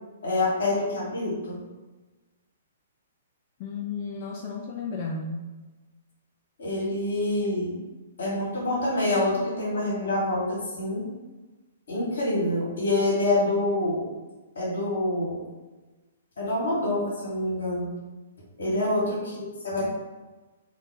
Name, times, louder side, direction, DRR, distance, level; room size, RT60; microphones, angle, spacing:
voice 1, 0.2-1.6 6.6-7.7 8.2-11.1 11.9-14.0 14.5-15.4 16.4-17.9 18.6-19.8, left 2 dB, 60° left, -6 dB, 1.4 m, -26 dB
voice 2, 3.6-5.5 18.7-19.0, left 4 dB, 40° left, 0 dB, 0.3 m, -34 dB
2.7 x 2.6 x 3.4 m, 1.2 s
figure-of-eight pair, 120°, 0 cm